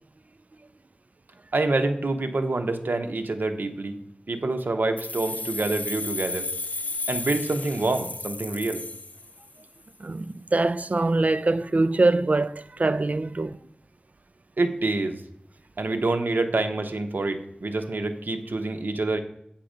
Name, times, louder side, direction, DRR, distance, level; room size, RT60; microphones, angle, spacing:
voice 1, 1.5-4.0 4.3-6.5 7.1-8.8 14.6-15.2 15.8-19.2, right 2 dB, 85° right, 0.9 m, -26 dB
sound 1, 5.0-9.8, left 2 dB, 50° left, 0.7 m, -33 dB
voice 2, 10.0-13.6, right 2 dB, 50° right, 0.4 m, -23 dB
8.8 x 5.9 x 5.1 m
wide cardioid pair, 55°, 3 cm